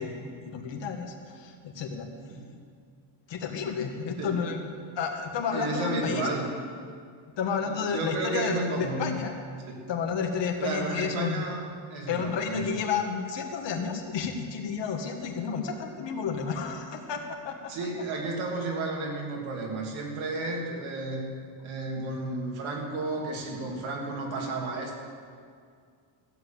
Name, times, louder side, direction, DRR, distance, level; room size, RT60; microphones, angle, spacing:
voice 1, 0.0-2.1 3.3-4.7 4.9-6.3 7.4-9.3 9.9-11.5 12.1-17.7 21.6-21.7, left 6 dB, 60° left, 3 dB, 1.7 m, -31 dB
voice 2, 5.5-6.5 7.6-9.1 9.7-9.8 10.6-11.6 11.9-12.7 17.7-21.3 21.6-25.0, right 2 dB, 75° right, -1 dB, 2.6 m, -32 dB
15.0 x 7.6 x 7.6 m, 2.1 s
cardioid pair, 170°, 48 cm